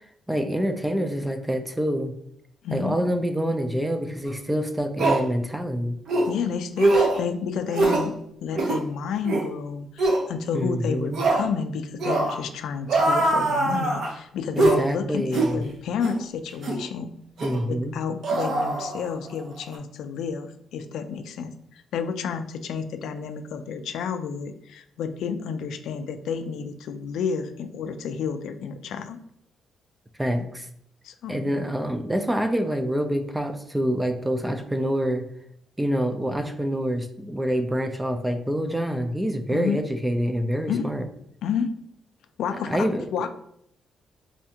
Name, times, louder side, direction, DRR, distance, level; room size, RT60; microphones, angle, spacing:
voice 1, 0.3-2.1 2.7-6.0 10.5-11.2 14.5-15.6 17.4-18.0 30.2-30.7 31.3-35.3 35.8-41.1 42.6-43.1, equal, 5° right, 7 dB, 0.3 m, -26 dB
voice 2, 2.6-3.0 6.2-8.2 8.4-17.1 17.7-29.2 31.0-31.5 39.5-39.8 40.7-41.0 41.4-41.7 42.4-43.3, left 6 dB, 80° left, 8 dB, 0.3 m, -30 dB
sound 1, 4.3-4.4 5.0-5.2 6.1-6.3 6.8-7.2 7.7-8.1 8.5-8.8 9.2-9.5 10.0-10.2 11.1-11.5 12.0-12.4 12.9-14.1 14.6-14.8 15.3-15.5 16.0-16.2 16.6-16.8 17.4-17.6 18.2-19.3 19.6-19.8, right 2 dB, 60° right, 0.6 m, -22 dB
4.2 x 2.4 x 2.8 m, 0.71 s
cardioid pair, 150°, 0 cm